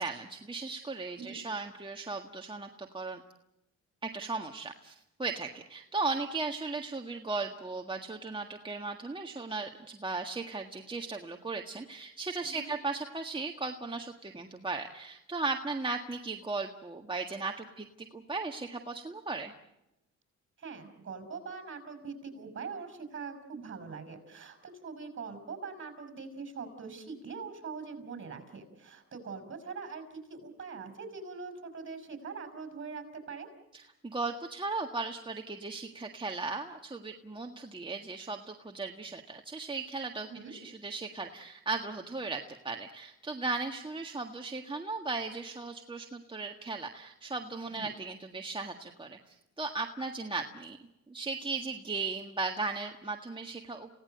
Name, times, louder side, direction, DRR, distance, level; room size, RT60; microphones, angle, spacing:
voice 1, 0.0-3.2 4.0-4.9 5.2-17.9 18.1-19.5 33.7-50.8 51.1-53.9, right 3 dB, 15° right, 2 dB, 1.7 m, -37 dB
voice 2, 20.6-33.5 40.3-40.6 47.8-47.9, right 5 dB, 40° right, 10 dB, 6.0 m, -43 dB
29.0 x 17.5 x 8.0 m, 0.90 s
cardioid pair, 90°, 30 cm